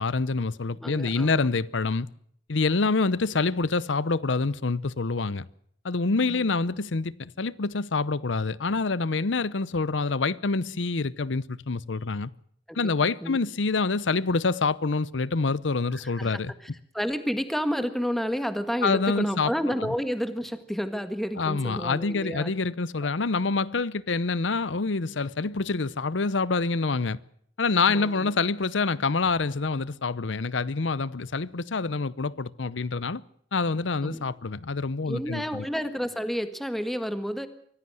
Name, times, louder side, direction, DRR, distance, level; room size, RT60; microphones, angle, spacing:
voice 1, 0.0-2.1 2.5-5.5 5.8-12.3 12.7-16.5 18.8-19.5 21.4-27.2 27.6-33.2 33.5-35.6, left 4 dB, 90° left, 0.8 m, -26 dB
voice 2, 0.8-1.5 6.3-6.4 12.7-13.4 16.0-16.4 16.9-22.5 23.0-23.1 27.9-28.3 34.0-34.2 35.1-37.5, equal, ahead, 1.5 m, -30 dB
24.0 x 15.5 x 7.7 m
head